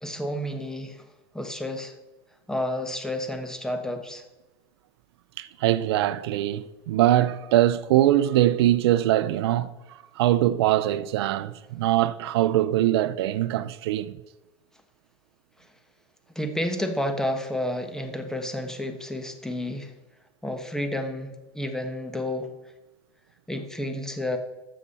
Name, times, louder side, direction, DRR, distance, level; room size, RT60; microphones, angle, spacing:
voice 1, 0.0-1.1 1.3-1.9 2.5-4.2 16.3-19.9 20.4-22.5 23.5-24.4, left 1 dB, 5° left, 1.3 m, -30 dB
voice 2, 5.4-14.1, right 13 dB, 80° right, 0.5 m, -22 dB
12.5 x 7.3 x 4.2 m
supercardioid pair, 110°, 13 cm